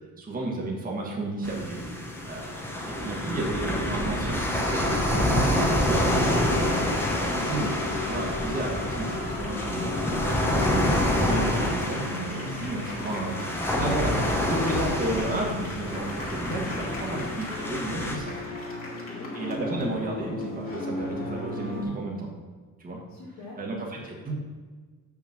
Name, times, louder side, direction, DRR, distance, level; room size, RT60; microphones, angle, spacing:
voice 1, 0.0-2.6 3.0-6.7 7.2-9.8 10.6-18.4 19.3-22.3 22.8-23.0 23.6-24.4, right 2 dB, 25° right, -2 dB, 1.7 m, -32 dB
sound 1, 1.4-18.2, left 1 dB, 5° left, 1.1 m, -27 dB
sound 2, 4.6-21.8, left 2 dB, 35° left, 2.8 m, -36 dB
voice 2, 13.0-13.4 18.8-19.3 23.1-23.6, left 1 dB, 75° left, -8 dB, 2.2 m, -44 dB
6.2 x 6.1 x 6.0 m, 1.4 s
cardioid pair, 125°, 35 cm